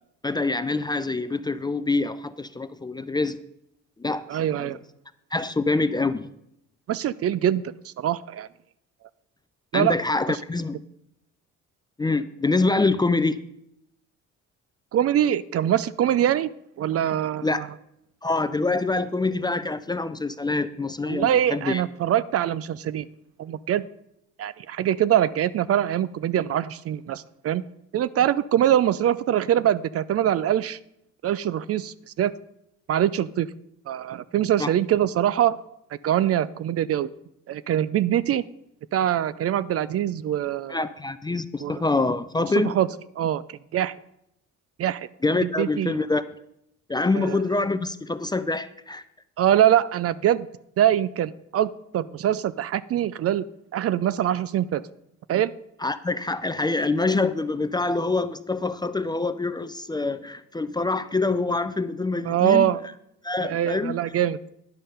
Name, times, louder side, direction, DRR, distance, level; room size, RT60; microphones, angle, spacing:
voice 1, 0.2-3.4 4.0-4.8 5.3-6.3 9.7-10.8 12.0-13.4 17.4-17.6 18.2-21.8 34.6-34.7 40.7-42.8 45.2-46.3 46.9-49.0 55.8-62.7 63.2-64.0, left 3 dB, 15° left, 12 dB, 0.4 m, -25 dB
voice 2, 4.3-4.8 6.9-8.5 9.7-9.9 14.9-16.5 16.8-17.7 21.1-23.1 23.4-23.9 24.4-27.6 27.9-30.8 31.2-32.3 32.9-33.5 33.9-35.6 36.0-37.1 37.5-38.4 38.9-40.9 41.6-41.8 42.6-42.9 43.2-43.9 44.8-45.1 45.4-46.0 47.2-47.4 49.4-50.5 50.8-53.4 53.7-54.8 55.3-55.5 62.3-62.8 63.4-64.4, right 11 dB, 50° right, 17 dB, 0.4 m, -23 dB
10.5 x 5.4 x 5.6 m, 0.78 s
cardioid pair, 90°, 30 cm